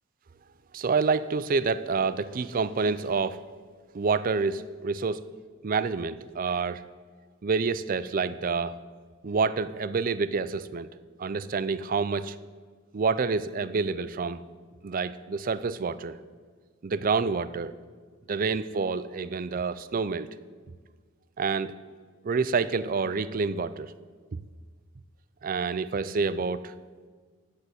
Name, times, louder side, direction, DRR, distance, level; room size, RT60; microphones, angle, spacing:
voice 1, 0.7-3.4 3.9-5.2 5.6-6.8 7.4-8.8 9.2-10.9 11.2-12.4 12.9-14.4 14.8-16.2 16.8-17.7 18.3-20.3 21.4-21.7 22.2-23.9 25.4-26.7, right 4 dB, 40° right, 15 dB, 0.4 m, -28 dB
9.8 x 6.6 x 7.8 m, 1.6 s
head